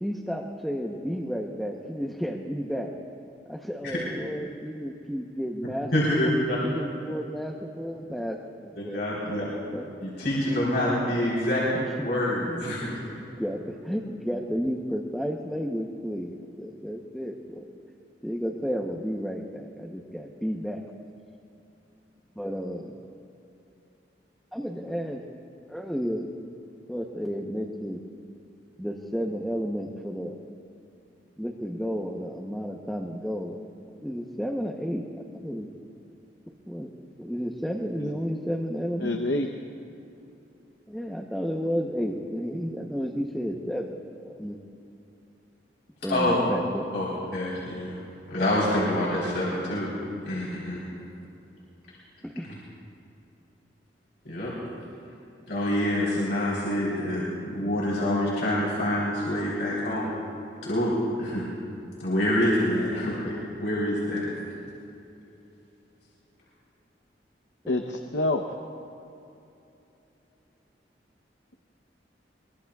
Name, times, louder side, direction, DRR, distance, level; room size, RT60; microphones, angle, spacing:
voice 1, 0.0-2.9 3.5-5.9 6.2-6.3 6.6-8.4 8.6-9.0 9.7-9.9 11.7-12.1 12.4-12.6 13.4-17.6 18.2-20.9 22.4-22.9 24.5-25.2 25.7-26.3 26.9-28.0 28.8-30.4 31.4-33.6 34.0-35.0 35.3-35.7 36.7-36.9 37.2-39.2 40.9-44.6 46.0-46.9 52.2-52.5, equal, ahead, -1 dB, 0.9 m, -32 dB
voice 2, 5.9-6.6 8.8-9.4 10.0-11.6 12.0-13.0 46.1-46.4 46.9-47.0 47.3-48.0 48.3-49.9 50.2-50.8 54.3-54.5 55.5-60.1 60.6-60.9 61.2-61.4 62.0-63.3 63.6-64.3, left 1 dB, 70° left, -7 dB, 4.0 m, -26 dB
voice 3, 39.0-39.5 67.7-68.4, left 2 dB, 90° left, 4 dB, 0.8 m, -27 dB
23.5 x 23.0 x 2.4 m, 2.9 s
head